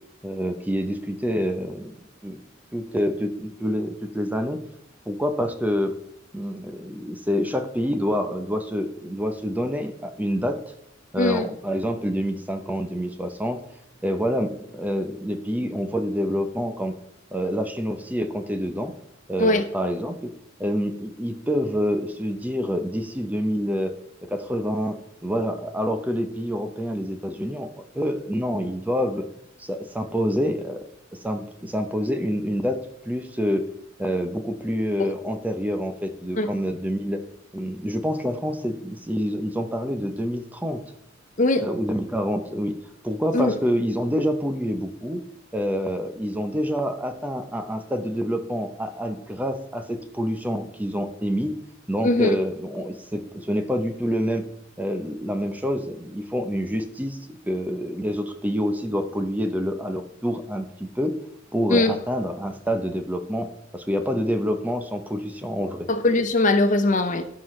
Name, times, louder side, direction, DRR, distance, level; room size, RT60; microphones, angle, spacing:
voice 1, 0.2-2.4 2.7-4.6 5.1-5.9 6.3-10.6 11.1-13.6 14.0-16.9 17.3-18.9 19.3-20.3 20.6-23.9 24.3-27.7 27.9-29.2 29.6-30.8 31.2-33.6 34.0-37.2 37.5-40.8 41.6-42.8 43.0-45.2 45.5-51.5 51.9-54.5 54.8-61.1 61.5-65.9, equal, 10° right, 6 dB, 0.7 m, -27 dB
voice 2, 52.0-52.4 61.7-61.9 65.9-67.2, left 2 dB, 40° left, 8 dB, 0.7 m, -20 dB
16.5 x 5.8 x 3.2 m, 0.79 s
head